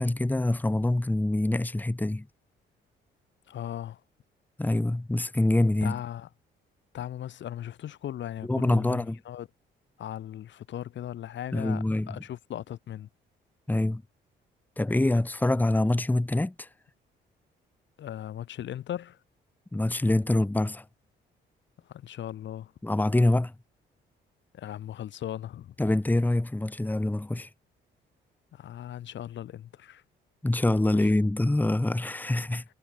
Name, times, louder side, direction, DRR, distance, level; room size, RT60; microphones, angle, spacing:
voice 1, 0.0-2.3 4.6-6.0 8.4-9.2 11.5-12.2 13.7-14.0 14.8-16.7 19.7-20.8 22.8-23.5 25.8-27.5 30.4-32.6, left 1 dB, 10° left, 1.3 m, -25 dB
voice 2, 3.5-4.0 5.8-6.3 6.9-9.5 10.0-13.1 18.0-19.2 21.9-22.7 24.5-25.7 28.5-30.0 31.0-31.1, left 11 dB, 65° left, 1.8 m, -38 dB
cardioid pair, 90°, 20 cm